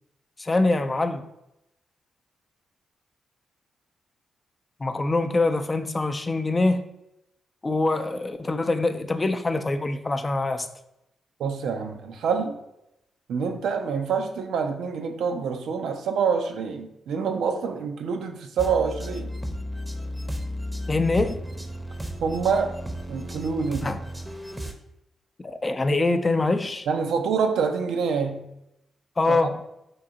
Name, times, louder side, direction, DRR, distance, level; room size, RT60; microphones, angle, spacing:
voice 1, 0.4-1.2 4.8-6.8 7.6-10.7 20.9-21.4 23.8-24.0 25.4-26.9 29.2-29.6, left 2 dB, 35° left, 8 dB, 0.4 m, -24 dB
voice 2, 11.4-12.6 13.3-19.3 22.2-22.8 23.1-24.0 26.9-28.5 29.3-29.4, right 6 dB, 75° right, 5 dB, 0.4 m, -26 dB
sound 1, 18.6-24.7, equal, 10° right, 0.7 m, -34 dB
3.7 x 2.7 x 3.8 m, 0.86 s
hypercardioid pair, 45°, 0 cm